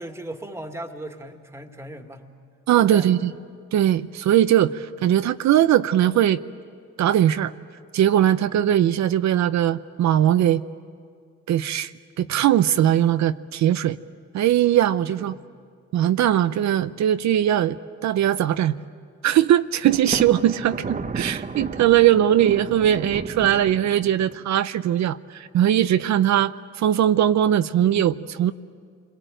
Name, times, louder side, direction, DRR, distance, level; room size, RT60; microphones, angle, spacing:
voice 1, 0.0-2.3 2.8-3.1 15.2-15.5, right 1 dB, 10° right, 5 dB, 2.2 m, -37 dB
voice 2, 2.7-3.3 3.7-6.4 7.0-7.5 7.9-10.6 11.5-11.9 12.2-14.0 14.3-15.3 15.9-18.8 19.2-28.5, right 11 dB, 65° right, 12 dB, 0.7 m, -20 dB
Thunder, 19.9-24.5, right 4 dB, 25° right, 1.0 m, -33 dB
28.0 x 22.0 x 9.1 m, 2.1 s
cardioid pair, 90°, 30 cm